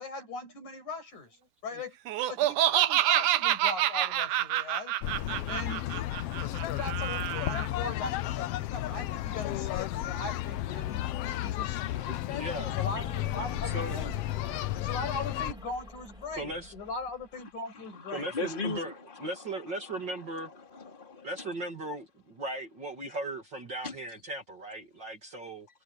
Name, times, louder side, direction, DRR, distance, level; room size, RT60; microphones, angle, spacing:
voice 1, 0.0-1.4 1.6-1.9 2.3-4.9 5.5-5.8 6.7-11.0 11.4-11.8 12.6-14.1 14.5-18.3, left 3 dB, 65° left, 8.5 m, -39 dB
Laughter, 2.1-7.7, right 13 dB, 75° right, 2.4 m, -28 dB
sound 1, 5.0-15.5, left 14 dB, 85° left, 1.3 m, -33 dB
voice 2, 11.2-13.5 15.2-16.0 16.9-21.5 23.1-23.2 23.8-24.0, left 4 dB, 15° left, 3.7 m, -43 dB
voice 3, 12.3-12.8 13.7-14.0 16.4-16.7 18.1-18.9 19.2-20.5 21.2-25.7, right 1 dB, 35° right, 2.7 m, -37 dB
sound 2, 12.8-17.3, equal, ahead, 3.2 m, -46 dB
omnidirectional pair, 3.7 m